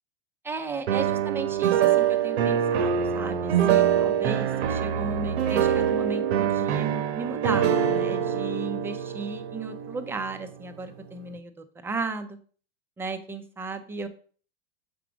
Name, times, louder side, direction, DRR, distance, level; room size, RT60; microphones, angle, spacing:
voice 1, 0.4-12.4 13.0-14.1, right 3 dB, 5° right, 8 dB, 0.5 m, -35 dB
sound 1, 0.9-10.8, right 9 dB, 85° right, 1.0 m, -24 dB
6.9 x 4.8 x 5.0 m, 0.43 s
supercardioid pair, 155°, 31 cm